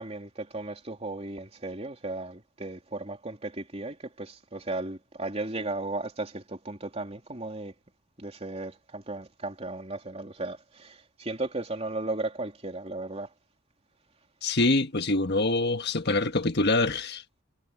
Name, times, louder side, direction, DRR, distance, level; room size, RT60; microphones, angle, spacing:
voice 1, 0.0-7.7 8.2-13.3, right 2 dB, 30° right, 3.3 m, -35 dB
voice 2, 14.4-17.4, left 2 dB, 50° left, 1.4 m, -25 dB
head